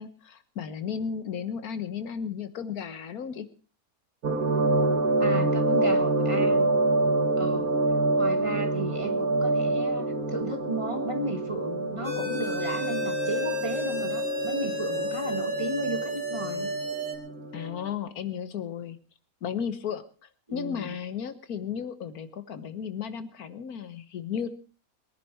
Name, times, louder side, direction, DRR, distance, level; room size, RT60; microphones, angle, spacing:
voice 1, 0.0-3.5 17.5-19.0 19.4-20.0 20.5-24.5, left 7 dB, 85° left, 11 dB, 1.7 m, -34 dB
sound 1, 4.2-17.9, right 2 dB, 75° right, 2.2 m, -27 dB
voice 2, 5.2-6.7 7.4-7.8 8.1-16.8 20.5-20.9, right 1 dB, 20° right, 6 dB, 1.6 m, -34 dB
sound 2, 12.0-17.2, left 1 dB, 60° right, 3.2 m, -32 dB
22.0 x 10.0 x 4.6 m, 0.37 s
omnidirectional pair, 1.5 m